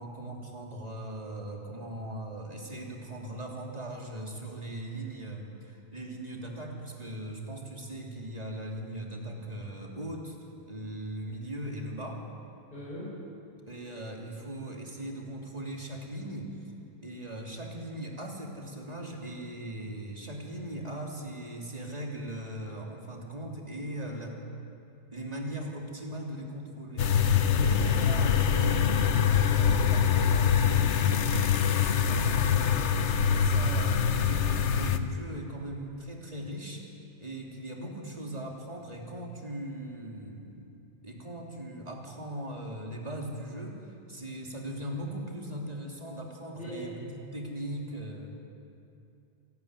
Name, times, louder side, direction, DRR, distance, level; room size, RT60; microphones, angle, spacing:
voice 1, 0.0-10.4 10.6-12.2 13.7-16.5 17.0-24.4 25.1-31.2 31.8-36.8 37.2-40.7 41.0-47.0 47.3-48.3, right 1 dB, 35° right, -1 dB, 3.1 m, -39 dB
voice 2, 12.7-13.2 27.5-27.8 46.5-46.9, equal, 40° left, -7 dB, 6.5 m, -40 dB
sound 1, 27.0-35.0, left 7 dB, 90° left, 1.2 m, -24 dB
28.5 x 12.0 x 9.7 m, 2.7 s
omnidirectional pair, 1.2 m